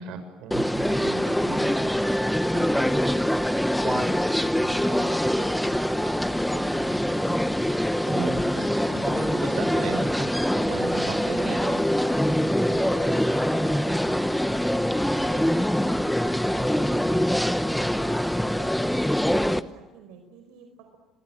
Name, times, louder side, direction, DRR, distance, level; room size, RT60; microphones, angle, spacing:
voice 1, 0.0-2.6 3.8-4.0 4.5-5.2 8.1-11.9, right 6 dB, 70° right, 8 dB, 6.5 m, -36 dB
sound 1, 0.5-19.6, equal, ahead, 1.0 m, -24 dB
voice 2, 0.8-1.3 3.9-7.5 12.6-14.6 14.9-15.5 16.2-18.9 19.3-21.0, right 6 dB, 90° right, 4 dB, 5.0 m, -47 dB
28.0 x 23.0 x 7.9 m, 1.1 s
cardioid pair, 125°, 0 cm